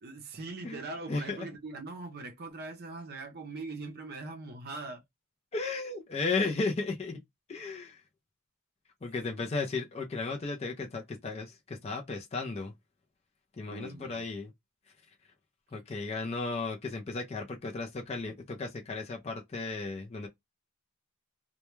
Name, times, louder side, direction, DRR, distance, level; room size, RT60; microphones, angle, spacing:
voice 1, 0.0-5.0 13.7-14.3, right 3 dB, 45° right, 0.5 m, -41 dB
voice 2, 1.1-1.5 5.5-7.2 7.5-8.0 9.0-12.7 13.6-14.5 15.7-20.3, left 3 dB, 30° left, 0.4 m, -34 dB
2.2 x 2.1 x 2.9 m
head